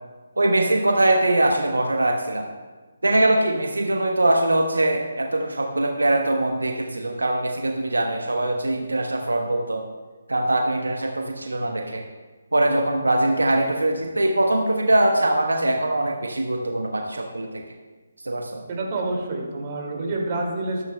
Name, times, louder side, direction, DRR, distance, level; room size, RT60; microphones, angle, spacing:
voice 1, 0.4-2.5 3.0-9.8 10.3-12.0 12.5-17.6 18.2-18.6, right 1 dB, 85° right, 3 dB, 1.0 m, -22 dB
voice 2, 18.7-20.8, right 2 dB, 35° right, -1 dB, 2.3 m, -27 dB
13.5 x 12.5 x 2.2 m, 1.3 s
figure-of-eight pair, 150°, 0 cm